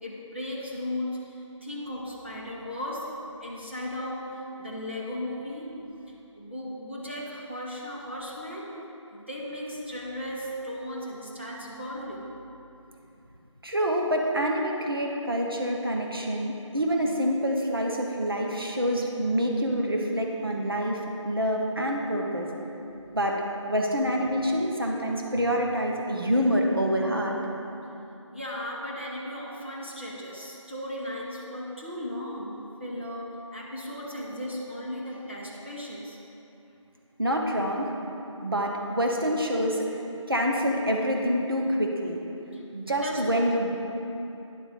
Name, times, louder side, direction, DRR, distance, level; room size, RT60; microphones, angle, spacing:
voice 1, 0.0-5.7 6.3-8.8 9.1-12.2 28.3-36.2 42.5-42.6 43.0-43.2, left 1 dB, 25° right, -7 dB, 1.0 m, -36 dB
voice 2, 13.6-22.5 23.1-27.3 37.2-37.9 38.4-40.0 40.3-42.2 42.7-43.7, equal, 45° right, 0 dB, 0.9 m, -26 dB
9.9 x 4.2 x 6.6 m, 2.9 s
figure-of-eight pair, 180°, 16 cm